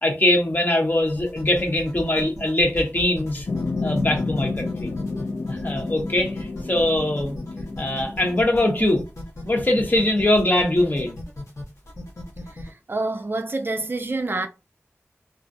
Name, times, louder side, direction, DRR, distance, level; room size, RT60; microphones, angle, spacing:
voice 1, 0.0-3.5 3.8-4.9 5.5-7.3 7.8-9.0 9.4-11.2, left 1 dB, 35° left, 0.8 m, -22 dB
sound 1, 1.1-12.7, left 1 dB, 85° left, 1.1 m, -37 dB
sound 2, 3.5-8.5, left 3 dB, 65° left, 0.4 m, -30 dB
voice 2, 12.6-14.5, right 2 dB, 45° right, 0.3 m, -27 dB
2.4 x 2.1 x 2.5 m
wide cardioid pair, 55°, 5 cm